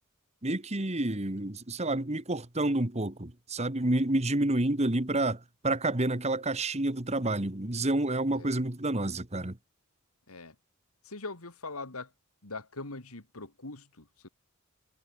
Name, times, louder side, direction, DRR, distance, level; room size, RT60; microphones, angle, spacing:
voice 1, 0.4-9.6, right 2 dB, 30° right, 1.8 m, -29 dB
voice 2, 11.0-12.1 12.4-14.3, left 3 dB, 85° left, 3.0 m, -42 dB
head